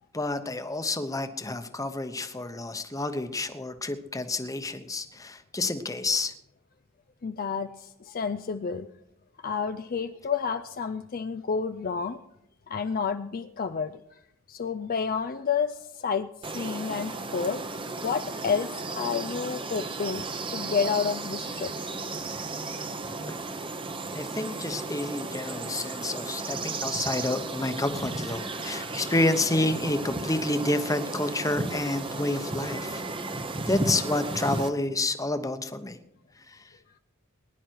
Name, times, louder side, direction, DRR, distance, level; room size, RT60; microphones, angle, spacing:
voice 1, 0.1-6.3 24.1-33.0 33.7-36.0 36.5-36.6, left 2 dB, 15° left, 9 dB, 1.0 m, -29 dB
voice 2, 7.2-8.9 9.4-12.2 12.7-14.0 14.5-17.6 18.0-20.2 20.5-21.7, left 6 dB, 45° left, 9 dB, 0.5 m, -30 dB
sound 1, 16.4-34.7, right 3 dB, 25° right, 1.0 m, -34 dB
20.0 x 10.5 x 4.7 m, 0.82 s
head